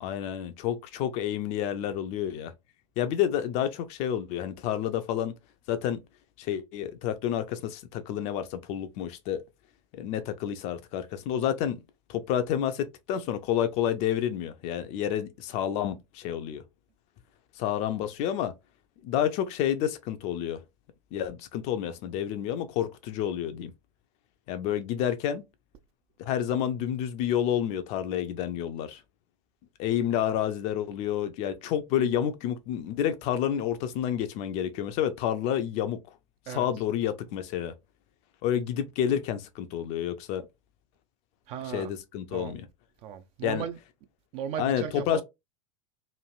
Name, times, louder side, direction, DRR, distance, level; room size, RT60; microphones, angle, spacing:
voice 1, 0.0-2.5 3.0-5.3 5.7-6.0 6.4-9.4 9.9-11.8 12.1-16.6 17.6-18.5 19.0-20.6 21.1-23.7 24.5-25.5 26.2-29.0 29.8-36.0 36.5-37.7 38.4-40.5 41.7-42.7 43.4-43.6 44.6-45.2, left 10 dB, 40° left, 0.5 m, -29 dB
voice 2, 41.5-41.9 42.3-42.5 43.0-43.8 44.3-45.2, right 9 dB, 35° right, 0.4 m, -36 dB
3.1 x 2.5 x 2.4 m
figure-of-eight pair, 90°, 18 cm